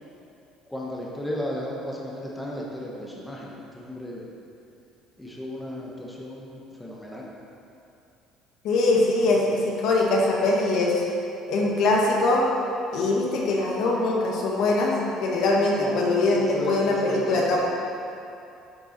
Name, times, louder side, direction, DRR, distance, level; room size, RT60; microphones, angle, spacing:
voice 1, 0.7-4.2 5.2-6.5 6.8-7.3 9.3-9.4 15.8-16.0 16.3-17.6, equal, 5° left, -4 dB, 1.1 m, -34 dB
voice 2, 8.6-11.0 11.5-12.5 12.9-17.6, left 2 dB, 65° left, -2 dB, 1.6 m, -22 dB
9.4 x 6.8 x 4.3 m, 2.7 s
cardioid pair, 140°, 0 cm